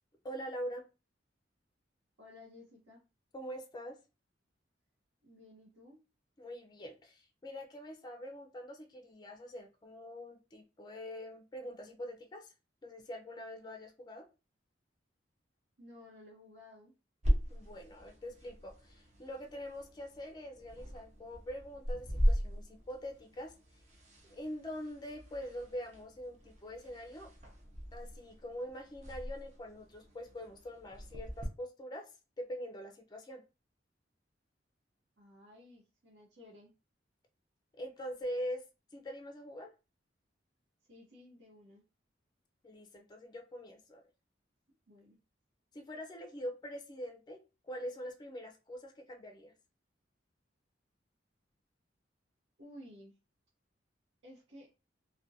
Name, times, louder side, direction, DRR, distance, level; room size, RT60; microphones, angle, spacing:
voice 1, 0.2-0.8 3.3-4.0 6.4-12.5 12.8-14.3 17.5-23.5 24.2-27.3 27.9-32.1 32.4-33.4 37.8-38.6 38.9-39.7 42.6-44.0 45.7-49.5, equal, 25° left, 5 dB, 0.4 m, -44 dB
voice 2, 2.2-3.0 5.2-6.0 15.8-16.9 35.2-36.7 40.9-41.8 44.9-45.2 52.6-53.1 54.2-54.7, left 1 dB, 90° right, -5 dB, 0.8 m, -55 dB
sound 1, 17.2-31.5, equal, 40° right, 0.6 m, -38 dB
2.4 x 2.1 x 2.6 m, 0.31 s
head